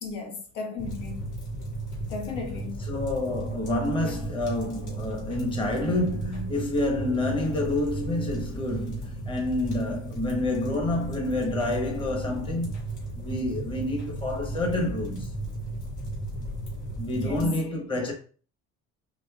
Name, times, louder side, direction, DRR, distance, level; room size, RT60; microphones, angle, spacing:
voice 1, 0.0-1.2 2.1-2.8 17.1-17.5, left 4 dB, 80° left, 1.4 m, -35 dB
sound 1, 0.8-17.5, right 2 dB, 65° left, 2.1 m, -35 dB
voice 2, 2.9-12.8 13.1-15.3 17.0-18.1, left 1 dB, 15° left, 0.9 m, -28 dB
5.1 x 3.1 x 2.3 m
cardioid pair, 125°, 32 cm